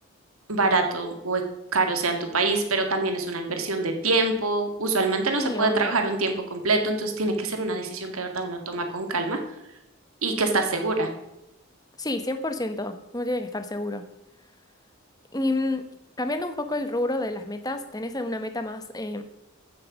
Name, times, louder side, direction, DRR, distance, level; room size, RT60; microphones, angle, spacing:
voice 1, 0.5-1.4 1.7-9.4 10.2-11.1, right 3 dB, 90° right, 5 dB, 2.0 m, -25 dB
voice 2, 5.3-6.0 12.0-14.0 15.3-19.2, left 2 dB, 15° left, 8 dB, 1.0 m, -29 dB
14.5 x 6.7 x 6.3 m, 0.89 s
head